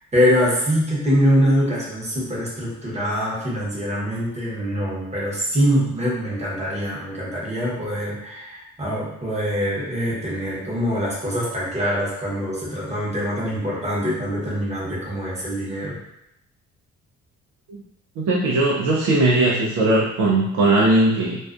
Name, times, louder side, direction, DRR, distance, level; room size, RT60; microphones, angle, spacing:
voice 1, 0.1-15.9, equal, 20° right, -5 dB, 0.9 m, -23 dB
voice 2, 18.2-21.4, right 2 dB, 70° right, -3 dB, 0.5 m, -19 dB
2.3 x 2.3 x 2.4 m, 0.85 s
cardioid pair, 90°, 30 cm